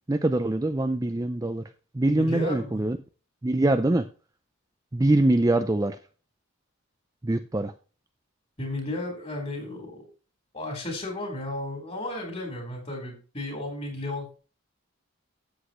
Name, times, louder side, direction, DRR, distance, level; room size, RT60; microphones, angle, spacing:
voice 1, 0.1-1.6 1.9-3.0 3.4-4.1 4.9-6.0 7.2-7.7, right 1 dB, 15° right, 8 dB, 0.4 m, -23 dB
voice 2, 2.1-2.8 8.6-10.1 10.5-14.4, left 1 dB, 30° left, 2 dB, 4.4 m, -34 dB
13.0 x 8.2 x 3.1 m, 0.36 s
head